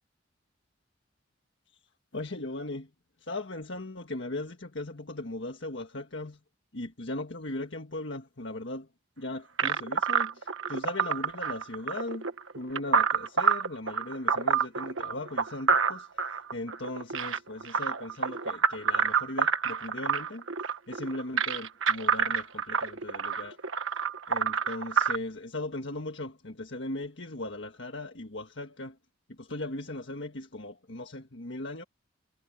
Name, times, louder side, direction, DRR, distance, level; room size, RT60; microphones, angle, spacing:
voice 1, 2.1-2.9 3.2-6.4 6.7-8.9 9.2-12.3 12.5-23.6 23.9-29.0 29.3-31.8, left 2 dB, 65° left, 1.7 m, -38 dB
sound 1, 9.6-25.2, right 6 dB, 85° right, 1.5 m, -28 dB
head